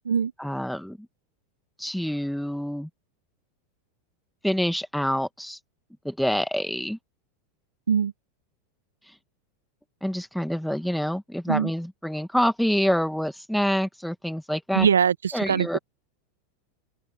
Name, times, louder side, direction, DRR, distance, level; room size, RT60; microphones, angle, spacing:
voice 1, 0.4-1.0 1.8-2.9 4.4-5.6 6.0-7.0 10.0-14.9 15.3-15.8, equal, ahead, 2.1 m, -26 dB
voice 2, 14.7-15.8, right 7 dB, 80° right, 1.6 m, -22 dB
open air
figure-of-eight pair, 90°, 0 cm